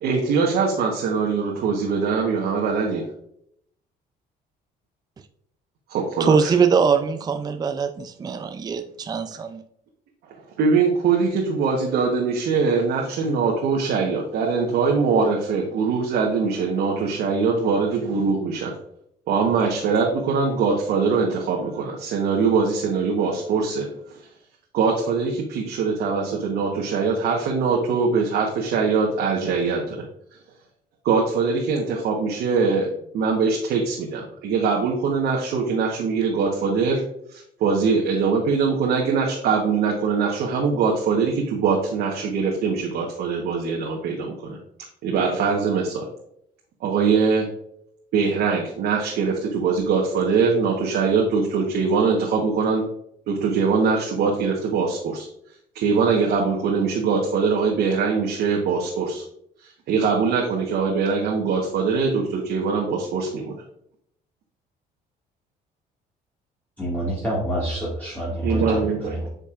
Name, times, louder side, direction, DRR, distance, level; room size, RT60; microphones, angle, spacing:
voice 1, 0.0-3.0 5.9-6.5 10.6-18.7 19.3-24.2 24.7-30.0 31.0-32.9 33.1-37.0 37.3-44.6 45.0-46.1 46.8-47.5 48.1-52.8 53.3-55.3 55.7-59.2 59.6-63.5 68.4-69.3, right 5 dB, 70° right, -1 dB, 1.2 m, -22 dB
voice 2, 6.2-9.6, right 6 dB, 25° right, 8 dB, 0.4 m, -22 dB
voice 3, 66.8-69.3, right 1 dB, 10° left, -7 dB, 2.0 m, -27 dB
8.6 x 5.3 x 2.5 m, 0.71 s
cardioid pair, 110°, 17 cm